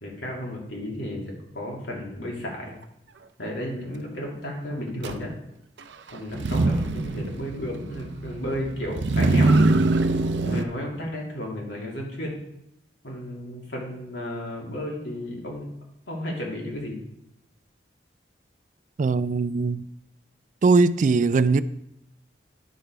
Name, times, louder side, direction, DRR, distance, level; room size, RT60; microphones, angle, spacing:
voice 1, 0.0-2.7 3.4-5.3 6.1-9.9 10.4-12.4 13.0-15.7 16.1-17.0, equal, 85° left, 2.7 m, -33 dB
Motor vehicle (road), 5.0-5.2 6.3-10.6, right 2 dB, 85° right, 0.6 m, -23 dB
voice 2, 19.0-19.9 20.6-21.6, right 4 dB, 45° right, 0.3 m, -20 dB
10.0 x 6.7 x 4.6 m
head